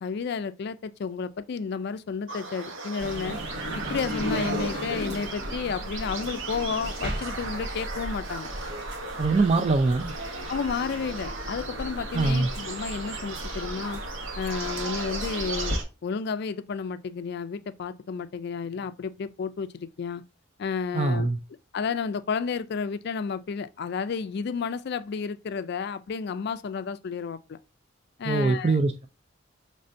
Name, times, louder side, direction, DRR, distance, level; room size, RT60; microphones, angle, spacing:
voice 1, 0.0-3.4 3.9-8.5 10.5-14.0 14.4-15.7 16.0-20.2 20.6-21.3 21.7-27.6 28.2-28.8, left 5 dB, 55° left, 0.4 m, -31 dB
sound 1, 2.3-15.8, right 3 dB, 80° right, 0.9 m, -37 dB
sound 2, 3.0-15.8, equal, 60° right, 1.5 m, -35 dB
voice 2, 9.2-10.1 12.1-12.5 20.9-21.4 28.2-29.1, right 3 dB, 30° right, 0.4 m, -23 dB
5.4 x 3.2 x 2.5 m
head